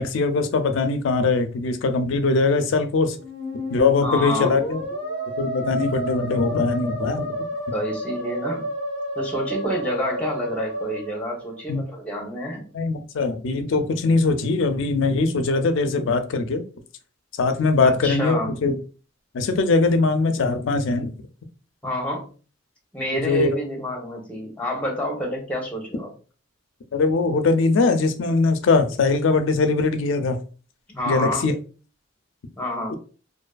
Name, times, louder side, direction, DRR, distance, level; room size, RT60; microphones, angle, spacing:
voice 1, 0.0-3.2 3.7-4.8 5.4-7.4 11.7-11.8 12.7-16.6 17.4-18.8 19.3-21.1 23.1-23.6 26.9-30.4 31.1-31.5 32.9-33.0, left 3 dB, 75° left, 0.4 m, -21 dB
Musical instrument, 3.1-11.9, equal, 90° right, 1.4 m, -30 dB
voice 2, 4.0-4.6 7.7-8.7 9.1-12.7 17.8-18.5 21.8-22.3 22.9-26.1 30.9-31.5 32.6-32.9, equal, 10° left, 0.7 m, -28 dB
2.5 x 2.5 x 2.2 m
head